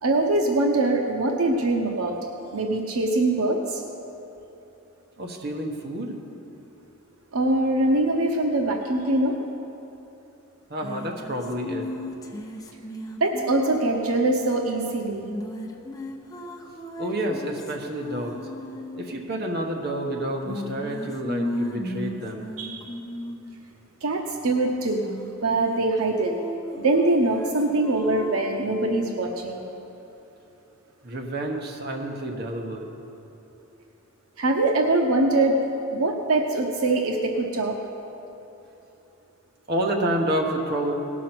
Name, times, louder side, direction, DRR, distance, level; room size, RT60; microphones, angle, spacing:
voice 1, 0.0-2.2 2.5-3.8 7.3-9.4 13.2-15.3 22.6-22.8 24.0-25.1 25.4-26.3 26.8-29.7 34.4-37.8, right 2 dB, 80° right, 2 dB, 0.9 m, -23 dB
voice 2, 5.2-6.2 10.7-11.9 17.0-18.4 18.9-22.5 31.0-32.9 39.7-40.9, right 1 dB, 45° right, 1 dB, 1.2 m, -29 dB
sound 1, 10.8-14.1 15.3-19.1 20.4-23.5 24.8-25.9 26.2-29.1, left 1 dB, 15° left, 0.8 m, -35 dB
18.0 x 6.2 x 6.0 m, 3.0 s
head